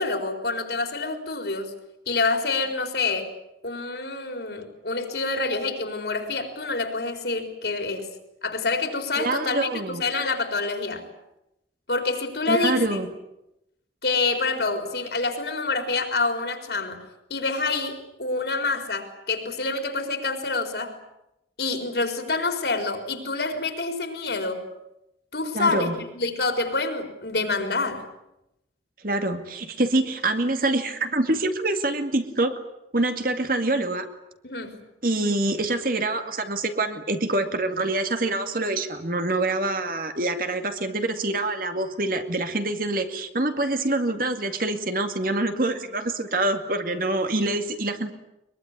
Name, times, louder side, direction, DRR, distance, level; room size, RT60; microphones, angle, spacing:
voice 1, 0.0-1.7 2.1-3.3 3.6-8.1 8.4-11.1 11.9-13.0 14.0-17.0 17.3-21.0 21.6-24.6 25.3-28.0 34.4-34.8, left 3 dB, 65° left, 6 dB, 4.3 m, -27 dB
voice 2, 9.2-10.0 12.5-13.1 25.5-26.0 29.0-32.5 32.9-34.1 35.0-48.1, right 2 dB, 50° right, 7 dB, 2.2 m, -25 dB
22.5 x 22.5 x 9.8 m, 0.88 s
head